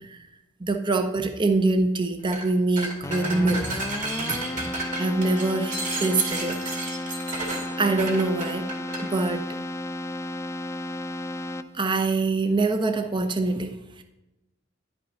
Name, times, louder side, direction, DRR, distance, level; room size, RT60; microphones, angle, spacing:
voice 1, 0.6-3.8 4.3-4.7 5.0-5.7 6.0-6.6 7.8-8.7 9.0-9.4 11.7-14.0, right 3 dB, 25° right, 7 dB, 0.7 m, -24 dB
sound 1, 2.2-2.5 2.8-9.1, right 2 dB, 40° right, 2.5 m, -32 dB
Keyboard (musical), 3.0-12.0, left 1 dB, 15° left, 0.4 m, -33 dB
10.5 x 5.4 x 5.5 m, 0.96 s
head